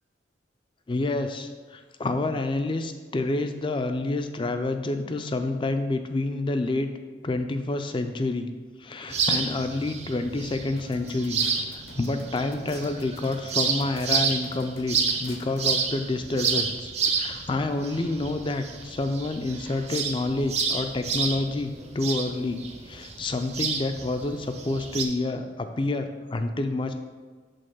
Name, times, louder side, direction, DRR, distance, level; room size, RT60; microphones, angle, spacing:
voice 1, 0.9-6.9 7.2-8.5 8.8-11.4 11.7-26.9, left 2 dB, 25° left, 8 dB, 0.4 m, -28 dB
sound 1, 9.1-25.0, right 5 dB, 35° right, 0.5 m, -30 dB
sound 2, 10.8-15.7, left 2 dB, 55° left, 0.8 m, -46 dB
5.3 x 3.9 x 5.9 m, 1.4 s
head